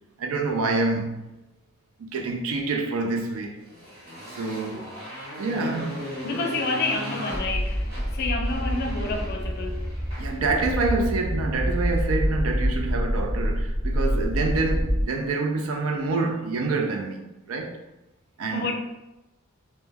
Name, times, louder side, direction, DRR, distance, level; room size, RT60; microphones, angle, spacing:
voice 1, 0.2-1.3 2.0-3.6 4.4-4.9 5.4-6.0 10.2-17.8 18.4-18.7, right 3 dB, 85° right, 0.4 m, -27 dB
Motorcycle, 3.6-11.0, equal, 65° right, 1.3 m, -38 dB
voice 2, 6.2-9.8 18.5-18.7, left 3 dB, 50° left, 0.4 m, -29 dB
sound 1, 7.3-15.0, equal, 30° right, 0.8 m, -27 dB
2.2 x 2.0 x 3.3 m
head